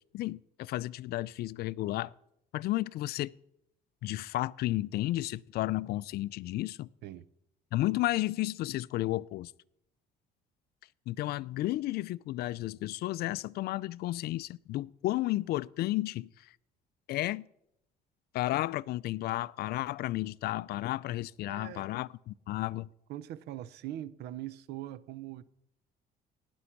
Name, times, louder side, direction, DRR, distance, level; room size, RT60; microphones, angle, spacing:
voice 1, 0.1-2.1 2.5-3.3 4.0-6.9 7.7-9.5 11.1-16.3 17.1-17.4 18.3-22.9, left 16 dB, 70° left, 0.4 m, -32 dB
voice 2, 21.5-21.9 23.1-25.4, right 13 dB, 75° right, 0.6 m, -41 dB
18.0 x 6.2 x 5.9 m
cardioid pair, 110°, 17 cm